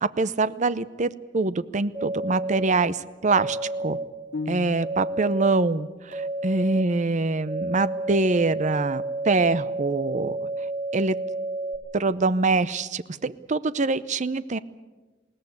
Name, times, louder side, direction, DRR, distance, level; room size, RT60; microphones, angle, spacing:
voice 1, 0.0-4.0 4.5-10.4 10.9-11.2 11.9-14.6, right 3 dB, 40° right, 16 dB, 0.7 m, -24 dB
sound 1, 1.9-2.7 3.3-4.0 4.8-5.5 6.1-6.8 7.5-11.8, right 2 dB, 90° right, 5.4 m, -30 dB
sound 2, 4.3-5.4, left 3 dB, 65° left, 0.7 m, -35 dB
21.0 x 18.0 x 9.6 m, 1.2 s
head